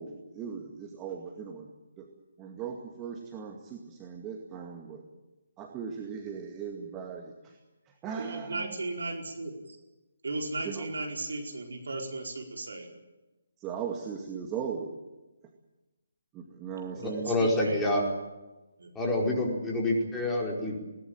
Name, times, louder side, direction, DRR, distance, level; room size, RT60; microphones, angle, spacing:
voice 1, 0.0-1.7 2.0-2.1 2.4-5.0 5.6-7.6 7.9-8.8 10.6-10.9 13.6-14.9 16.3-17.3, right 7 dB, 15° right, 2 dB, 2.1 m, -38 dB
voice 2, 8.2-9.8 10.2-12.9 17.0-17.9 18.8-18.9, right 2 dB, 65° right, 2 dB, 4.8 m, -36 dB
voice 3, 16.9-18.0 18.9-20.8, left 1 dB, 10° left, -2 dB, 4.8 m, -27 dB
21.0 x 19.0 x 9.0 m, 1.1 s
figure-of-eight pair, 145°, 0 cm